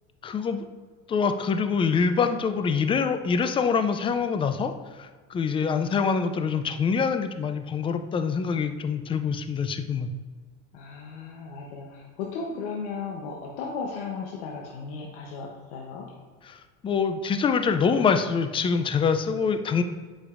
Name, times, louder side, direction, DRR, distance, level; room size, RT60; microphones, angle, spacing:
voice 1, 0.2-0.6 1.1-4.7 5.0-10.1 16.5-16.6 16.8-19.8, left 5 dB, 15° left, 8 dB, 0.3 m, -25 dB
voice 2, 5.6-5.9 10.7-16.1, left 4 dB, 85° left, -2 dB, 1.0 m, -35 dB
8.2 x 5.2 x 2.5 m, 1.5 s
supercardioid pair, 120°, 34 cm